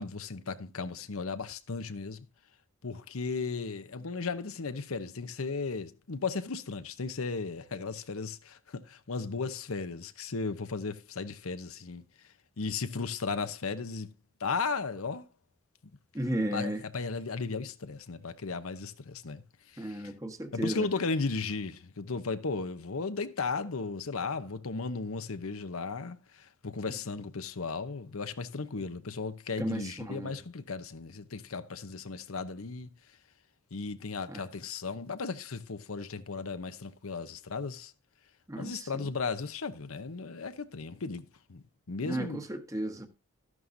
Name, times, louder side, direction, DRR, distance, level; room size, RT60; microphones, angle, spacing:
voice 1, 0.0-2.2 2.8-12.0 12.6-14.1 14.4-15.3 16.5-20.1 20.5-32.9 33.7-37.9 38.5-42.5, left 4 dB, 85° left, 0.9 m, -35 dB
voice 2, 16.1-16.8 19.8-20.9 29.6-30.3 34.3-34.4 38.5-39.1 42.0-43.1, right 1 dB, 15° right, 1.2 m, -34 dB
13.0 x 11.0 x 2.7 m
head